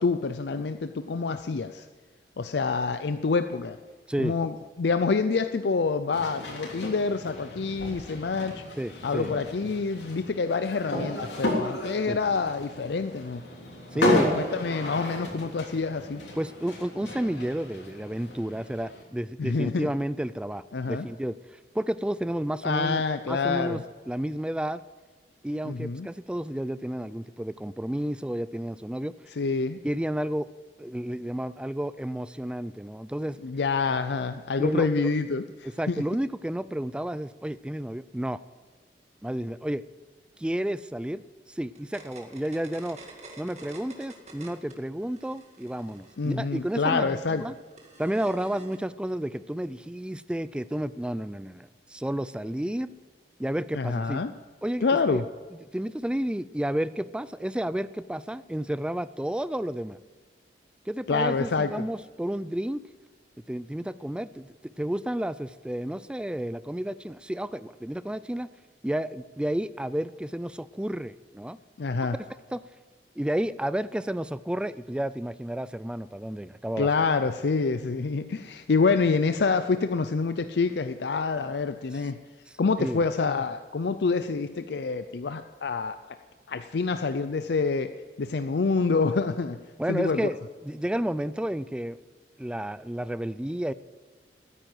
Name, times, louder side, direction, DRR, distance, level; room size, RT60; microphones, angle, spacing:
voice 1, 0.0-1.9 2.4-3.8 4.2-8.6 9.0-13.4 14.1-16.3 19.4-19.9 20.7-21.1 22.6-23.8 25.6-26.1 29.4-29.8 33.4-36.0 46.2-47.4 53.7-54.3 54.8-55.2 61.1-61.9 71.8-72.2 76.8-82.2 82.6-86.0 86.5-87.9 88.2-89.6 89.9-90.3, left 4 dB, 65° left, 9 dB, 0.5 m, -27 dB
sound 1, 6.1-19.0, left 1 dB, 80° left, 3.4 m, -33 dB
voice 2, 8.8-9.3 12.1-12.2 13.9-14.4 16.4-21.4 21.7-23.8 24.1-24.8 25.4-29.1 29.8-30.5 30.8-33.4 34.6-35.1 35.6-38.4 39.2-39.8 40.4-43.0 43.4-47.5 48.0-52.9 53.4-54.2 54.6-55.2 55.7-60.0 60.9-62.8 63.5-68.5 68.8-71.6 72.5-72.6 73.2-76.9 82.8-83.1 89.8-92.0 92.4-93.7, right 1 dB, 5° right, 16 dB, 0.3 m, -31 dB
sound 2, 41.8-44.7 45.0-48.8, right 3 dB, 40° right, 2.1 m, -49 dB
13.5 x 10.0 x 7.8 m, 1.4 s
head